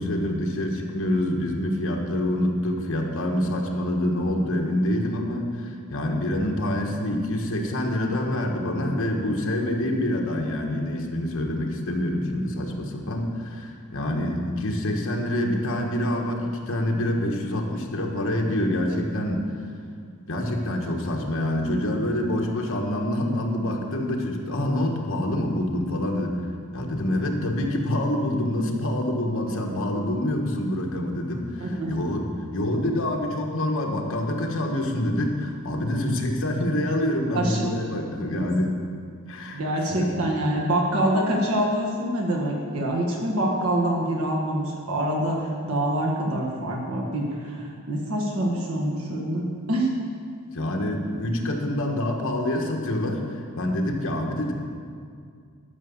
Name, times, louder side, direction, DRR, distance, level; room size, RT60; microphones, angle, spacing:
voice 1, 0.0-19.4 20.3-26.4 26.7-38.8 39.3-39.6 39.9-40.1 50.5-54.5, left 1 dB, 60° left, 1 dB, 1.4 m, -26 dB
voice 2, 31.6-32.0 37.3-37.6 38.2-38.5 39.5-49.9, right 1 dB, 70° right, -2 dB, 1.6 m, -25 dB
12.0 x 6.0 x 7.1 m, 2.2 s
head